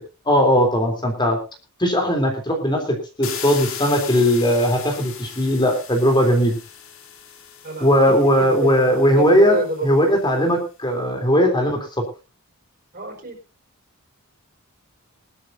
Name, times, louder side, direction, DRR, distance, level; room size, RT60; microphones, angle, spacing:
voice 1, 0.2-1.4 1.8-6.6 7.8-12.0, equal, 20° left, 4 dB, 3.2 m, -18 dB
sound 1, 3.2-10.1, left 8 dB, 65° left, 2.7 m, -37 dB
voice 2, 7.6-10.0 12.9-13.4, right 2 dB, 40° right, 3 dB, 4.7 m, -29 dB
22.0 x 12.5 x 2.7 m, 0.31 s
head